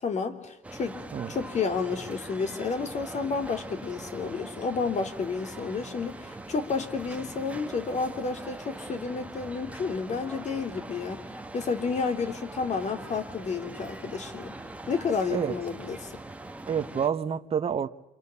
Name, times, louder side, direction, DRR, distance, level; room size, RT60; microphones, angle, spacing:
voice 1, 0.0-1.0 1.3-11.2 11.5-14.5 14.9-16.1, left 5 dB, 45° left, 3.1 m, -31 dB
sound 1, 0.6-17.1, right 2 dB, 10° right, 1.4 m, -42 dB
voice 2, 16.7-17.9, right 7 dB, 35° right, 1.1 m, -28 dB
27.5 x 26.5 x 7.1 m
cardioid pair, 110°, 17 cm